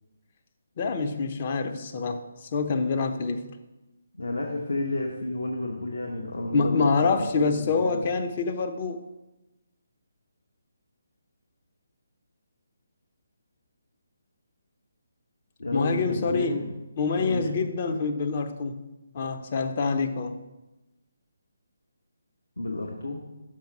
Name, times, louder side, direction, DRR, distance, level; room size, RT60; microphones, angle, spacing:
voice 1, 0.8-3.5 6.5-9.0 15.7-16.6 17.0-18.8 19.1-20.4, left 4 dB, 35° left, 6 dB, 0.6 m, -26 dB
voice 2, 4.2-8.1 15.6-16.7 17.2-17.6 22.6-23.2, left 2 dB, 65° left, 1 dB, 1.0 m, -31 dB
6.0 x 5.1 x 5.9 m, 1.1 s
figure-of-eight pair, 145°, 0 cm